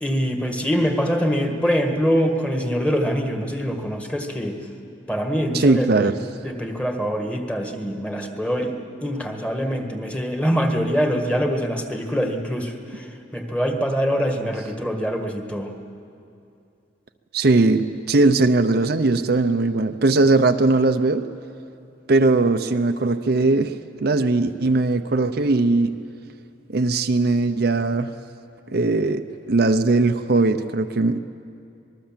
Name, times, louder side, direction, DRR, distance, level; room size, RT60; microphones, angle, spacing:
voice 1, 0.0-4.6 5.1-6.1 6.4-13.1 13.3-15.7, equal, 5° left, 4 dB, 1.6 m, -24 dB
voice 2, 5.5-6.2 17.3-21.3 22.1-23.7 24.0-25.9 26.7-28.1 28.7-31.2, right 3 dB, 55° right, 7 dB, 0.7 m, -19 dB
26.0 x 20.5 x 7.4 m, 2.6 s
head